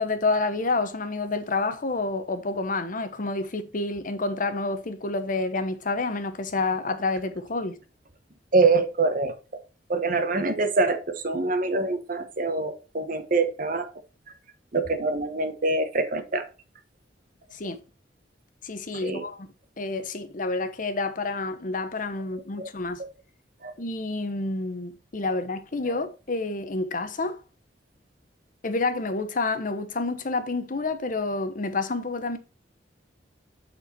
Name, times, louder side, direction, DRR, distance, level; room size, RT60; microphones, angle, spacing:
voice 1, 0.0-7.7 17.5-17.8 18.6-19.5 19.8-23.0 23.8-27.4 28.6-32.4, left 3 dB, 50° left, 0.9 m, -29 dB
voice 2, 8.5-9.6 9.9-13.9 14.7-16.5 18.9-19.3 22.6-22.7 23.0-23.1 23.6-23.7, right 3 dB, 50° right, 1.1 m, -25 dB
8.7 x 4.5 x 4.3 m
head